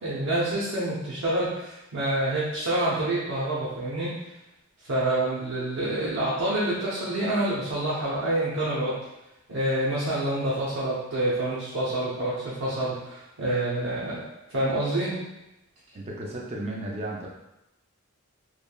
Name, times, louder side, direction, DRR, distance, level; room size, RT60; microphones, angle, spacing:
voice 1, 0.0-4.1 4.9-9.0 9.5-14.2 14.5-15.2, right 1 dB, 75° right, -8 dB, 0.6 m, -27 dB
voice 2, 15.9-17.3, right 1 dB, 30° right, -3 dB, 0.4 m, -34 dB
3.1 x 2.4 x 2.2 m, 0.94 s
head